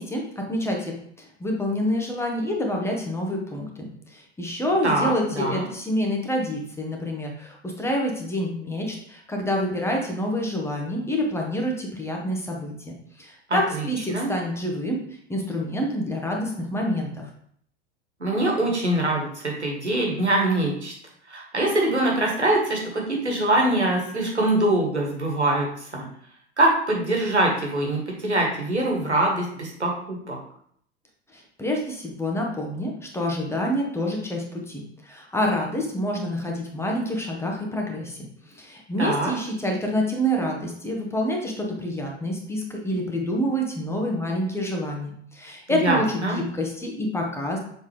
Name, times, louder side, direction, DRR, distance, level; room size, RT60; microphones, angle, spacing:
voice 1, 0.0-15.0 15.3-17.3 31.3-47.6, equal, 10° left, 0 dB, 1.3 m, -27 dB
voice 2, 4.8-5.6 13.5-14.3 18.2-20.9 21.3-26.0 26.6-30.4 39.0-39.3 45.7-46.4, right 1 dB, 85° right, -1 dB, 1.5 m, -23 dB
7.0 x 4.3 x 3.3 m, 0.65 s
figure-of-eight pair, 80°, 33 cm